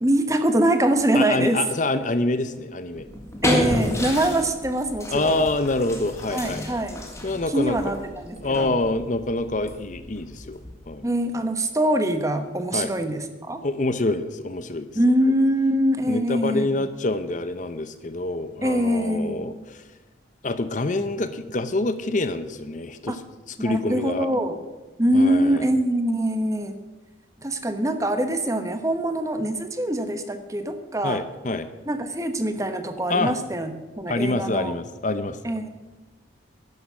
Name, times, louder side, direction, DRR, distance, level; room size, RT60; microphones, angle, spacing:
voice 1, 0.0-1.7 3.4-5.5 6.3-7.0 7.5-8.7 11.0-13.6 14.9-16.8 18.6-19.6 23.1-23.2 23.6-24.6 25.0-26.8 27.4-31.2 31.9-34.7 35.4-35.7, right 1 dB, 15° right, 8 dB, 1.0 m, -24 dB
voice 2, 1.1-3.1 5.1-6.6 7.2-7.8 8.4-10.6 10.9-11.1 12.7-12.9 13.6-14.9 16.1-19.8 20.4-23.2 23.6-24.3 25.1-25.7 31.0-31.7 33.1-33.3 34.1-35.4, left 2 dB, 40° left, 11 dB, 0.7 m, -26 dB
sound 1, 3.0-11.0, left 1 dB, 15° left, 1.8 m, -31 dB
11.5 x 10.5 x 7.2 m, 1.2 s
head